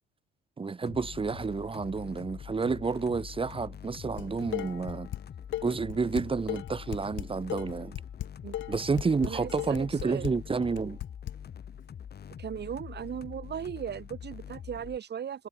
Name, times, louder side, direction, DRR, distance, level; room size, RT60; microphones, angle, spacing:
voice 1, 0.6-5.1 5.6-7.9 8.7-11.0, right 4 dB, 25° right, 1.4 m, -30 dB
sound 1, 0.9-15.0, left 8 dB, 55° left, 2.8 m, -44 dB
Dishes pots and pans, 4.2-5.2 5.5-11.3, left 14 dB, 75° left, 0.7 m, -36 dB
voice 2, 9.2-10.2 12.4-15.5, right 8 dB, 55° right, 5.0 m, -37 dB
cardioid pair, 90°, 20 cm